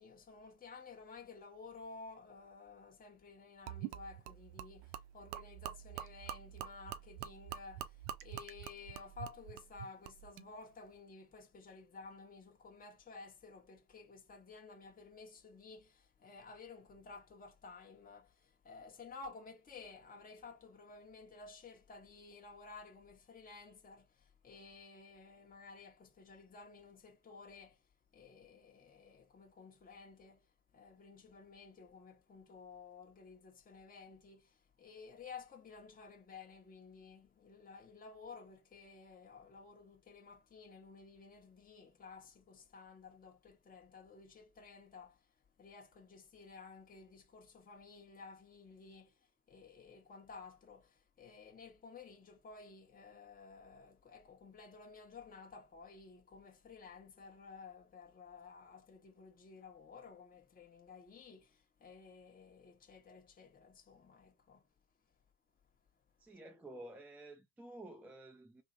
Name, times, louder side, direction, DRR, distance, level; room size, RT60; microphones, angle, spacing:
voice 1, 0.0-27.8 28.1-30.5 30.7-45.3 45.6-64.6, left 4 dB, 20° left, 1.1 m, -54 dB
Gurgling / Liquid, 3.7-10.5, right 12 dB, 55° right, 0.6 m, -46 dB
voice 2, 66.2-68.6, right 1 dB, 5° right, 0.3 m, -51 dB
3.6 x 2.0 x 2.6 m
hypercardioid pair, 80°, 44 cm